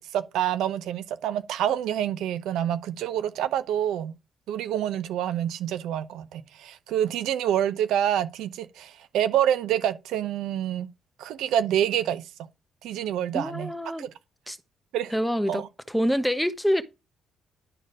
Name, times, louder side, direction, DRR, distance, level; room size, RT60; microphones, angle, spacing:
voice 1, 0.0-4.1 4.5-10.9 11.2-12.3 12.8-13.7 14.0-14.1 14.9-15.1 15.5-15.7, right 10 dB, 85° right, 0.9 m, -27 dB
voice 2, 13.3-14.1 14.5-14.6 15.1-15.6 15.9-16.8, equal, ahead, 1.1 m, -26 dB
11.0 x 4.4 x 5.0 m
cardioid pair, 90°, 0 cm